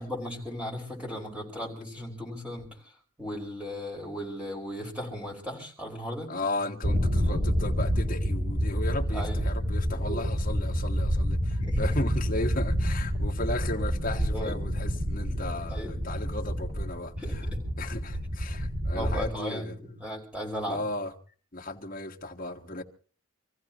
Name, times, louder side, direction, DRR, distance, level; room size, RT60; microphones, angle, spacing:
voice 1, 0.0-2.9 3.2-6.3 7.2-7.4 9.1-9.5 9.9-10.2 11.6-12.0 14.3-14.6 15.7-15.9 17.2-17.6 18.9-20.8, equal, 5° right, 4.9 m, -37 dB
voice 2, 6.3-17.4 17.8-19.7 20.7-21.1 21.5-22.8, left 2 dB, 40° left, 1.6 m, -35 dB
sound 1, 6.8-19.3, equal, 70° right, 2.8 m, -28 dB
26.5 x 15.0 x 3.0 m
head